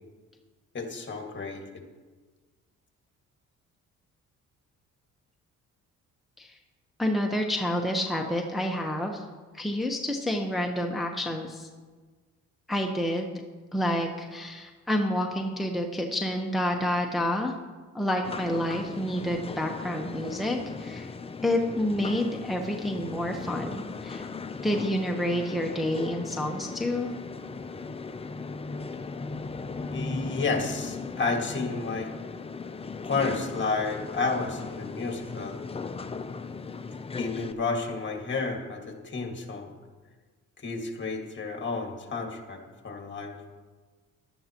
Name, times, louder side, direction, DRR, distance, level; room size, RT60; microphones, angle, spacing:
voice 1, 0.7-1.8 29.9-32.1 33.0-35.6 37.2-39.7 40.6-43.4, left 4 dB, 40° left, 3 dB, 1.9 m, -31 dB
voice 2, 7.0-9.2 9.5-11.7 12.7-13.4 13.7-17.5 17.9-21.1 21.4-24.3 24.6-27.1, left 1 dB, ahead, 1 dB, 1.0 m, -29 dB
sound 1, 18.2-37.5, left 4 dB, 20° left, 0.5 m, -37 dB
14.5 x 11.5 x 3.0 m, 1.4 s
cardioid pair, 90°, 30 cm